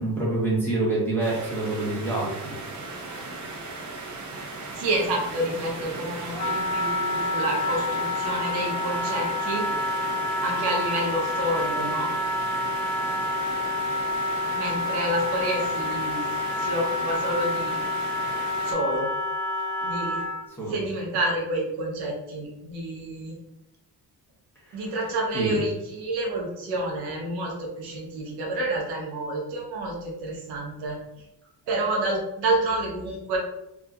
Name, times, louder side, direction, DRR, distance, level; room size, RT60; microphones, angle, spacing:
voice 1, 0.0-2.6 20.5-20.8 24.7-24.9 25.3-25.6, right 2 dB, 5° left, -7 dB, 1.0 m, -27 dB
sound 1, 1.2-18.7, right 3 dB, 45° right, 0.7 m, -37 dB
voice 2, 4.7-9.6 10.4-12.1 14.5-16.2 16.6-17.8 18.6-19.1 19.8-20.2 20.7-23.3 24.7-31.0 31.7-33.4, right 1 dB, 80° right, -1 dB, 0.9 m, -29 dB
Wind instrument woodwind instrument, 6.3-20.4, left 2 dB, 30° left, 1.1 m, -28 dB
2.8 x 2.4 x 2.4 m, 0.89 s
cardioid pair, 105°, 39 cm